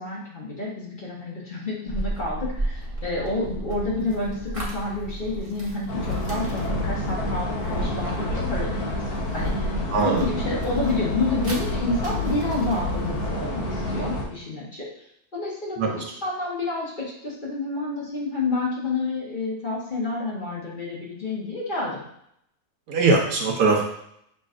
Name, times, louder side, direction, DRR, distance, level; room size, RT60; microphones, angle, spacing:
voice 1, 0.0-9.0 9.3-9.7 10.0-14.9 15.3-16.0 16.2-22.0, left 2 dB, 35° left, -5 dB, 1.0 m, -29 dB
sound 1, 1.9-13.3, right 1 dB, 25° right, 1.0 m, -34 dB
sound 2, 5.9-14.2, left 1 dB, 80° left, 1.5 m, -28 dB
voice 2, 9.9-10.2 15.8-16.0 22.9-23.9, right 3 dB, 85° right, 0 dB, 1.5 m, -21 dB
6.7 x 3.1 x 2.4 m, 0.73 s
omnidirectional pair, 1.6 m